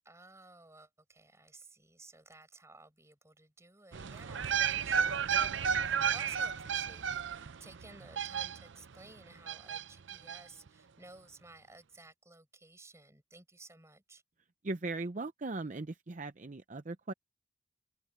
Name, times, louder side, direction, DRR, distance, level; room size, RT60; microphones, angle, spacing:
voice 1, 0.0-14.2, right 2 dB, 15° right, 6.8 m, -55 dB
sound 1, 3.9-8.9 9.5-10.4 10.7-10.8, right 7 dB, 85° right, 0.6 m, -33 dB
voice 2, 14.6-17.1, right 3 dB, 40° right, 0.7 m, -38 dB
open air
head